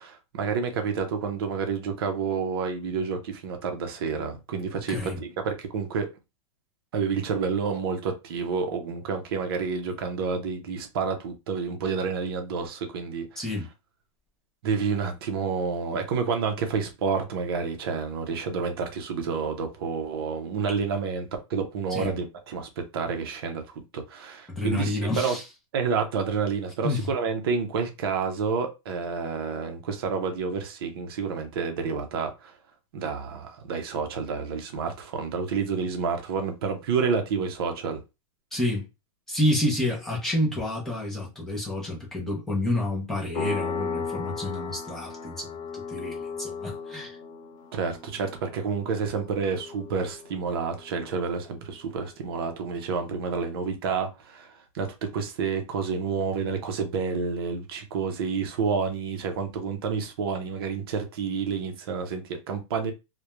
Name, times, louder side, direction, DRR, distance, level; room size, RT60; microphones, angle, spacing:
voice 1, 0.0-6.1 6.9-13.3 14.6-25.4 25.7-32.5 32.9-38.0 47.7-54.5 54.7-62.9, right 5 dB, 45° right, 0.6 m, -29 dB
voice 2, 4.9-5.2 13.4-13.7 21.9-22.1 24.5-25.4 26.8-27.1 38.5-38.9 39.3-47.2, left 1 dB, ahead, 0.4 m, -29 dB
sound 1, 43.3-51.7, left 5 dB, 60° left, 0.9 m, -36 dB
2.2 x 2.1 x 3.0 m
supercardioid pair, 175°, 18 cm